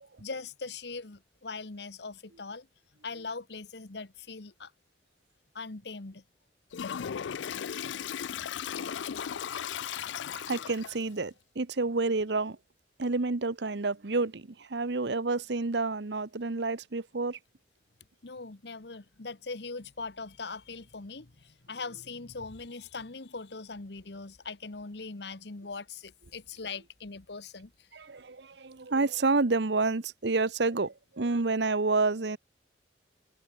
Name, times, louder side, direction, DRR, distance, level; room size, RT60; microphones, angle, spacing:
voice 1, 0.2-2.7 3.0-4.7 5.5-6.2 18.2-27.9, left 4 dB, 65° left, 1.2 m, -41 dB
Toilet flush, 6.7-11.1, left 8 dB, 85° left, 0.4 m, -36 dB
voice 2, 10.5-12.6 13.0-17.4 27.9-32.4, right 3 dB, 70° right, 0.9 m, -29 dB
head